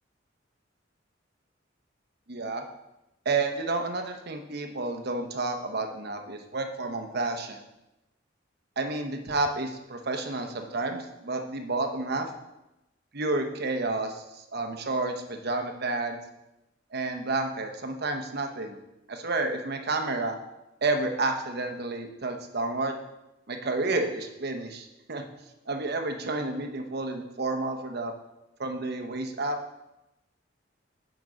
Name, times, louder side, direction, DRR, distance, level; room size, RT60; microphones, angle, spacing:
voice 1, 2.3-2.6 3.2-7.6 8.8-12.3 13.1-16.2 16.9-18.8 19.1-20.4 20.8-23.0 23.5-25.2 25.7-28.1 28.6-29.6, right 2 dB, 60° right, 5 dB, 1.0 m, -30 dB
9.2 x 5.2 x 4.9 m, 0.94 s
head